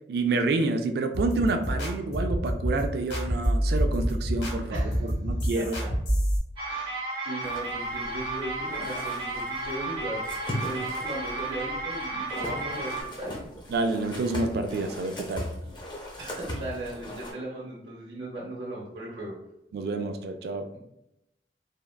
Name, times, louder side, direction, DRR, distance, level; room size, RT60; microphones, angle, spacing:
voice 1, 0.1-5.8 13.7-15.5 19.7-20.7, right 3 dB, 60° right, 0.3 m, -28 dB
sound 1, 1.1-6.4, equal, 80° left, 1.0 m, -27 dB
voice 2, 4.7-5.1 5.5-5.9 6.7-13.4 16.2-19.4, right 1 dB, 80° right, 0.7 m, -37 dB
sound 2, 6.6-13.0, right 2 dB, 30° right, 0.7 m, -33 dB
sound 3, 7.4-17.3, left 1 dB, 25° left, 0.6 m, -39 dB
3.5 x 2.1 x 2.2 m
head